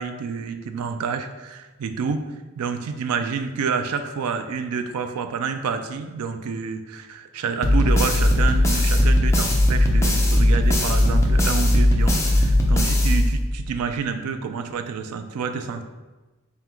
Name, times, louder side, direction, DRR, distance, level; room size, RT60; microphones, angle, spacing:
voice 1, 0.0-2.2 2.6-15.8, right 5 dB, 85° right, 8 dB, 0.4 m, -28 dB
sound 1, 7.6-13.7, left 1 dB, 15° left, 0.4 m, -18 dB
3.7 x 2.2 x 4.3 m, 1.2 s
head